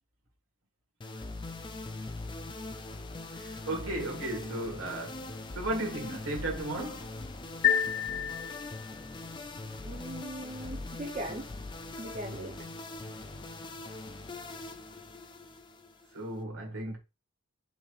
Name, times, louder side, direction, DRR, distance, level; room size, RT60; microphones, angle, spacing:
sound 1, 1.0-16.4, left 2 dB, 20° left, 0.4 m, -42 dB
voice 1, 3.3-7.1 16.1-17.0, right 1 dB, 75° right, 1.6 m, -35 dB
sound 2, 7.6-9.1, left 8 dB, 75° left, 1.5 m, -29 dB
voice 2, 9.8-11.4 12.0-12.6, right 1 dB, 30° right, 0.9 m, -39 dB
5.4 x 3.1 x 2.5 m
head